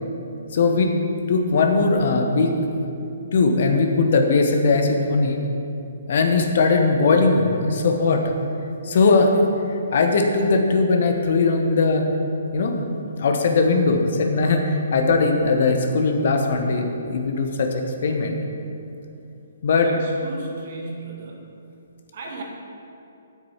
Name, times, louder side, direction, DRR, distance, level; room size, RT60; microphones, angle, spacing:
voice 1, 0.5-0.9 1.3-2.5 3.3-5.4 6.1-8.2 8.8-9.3 9.9-12.1 12.5-12.8 13.2-18.4 19.6-19.9, left 3 dB, 50° left, 3 dB, 1.1 m, -19 dB
voice 2, 19.8-21.4 22.1-22.4, right 3 dB, 45° right, 0 dB, 1.9 m, -36 dB
9.1 x 8.0 x 5.7 m, 2.7 s
figure-of-eight pair, 130°, 0 cm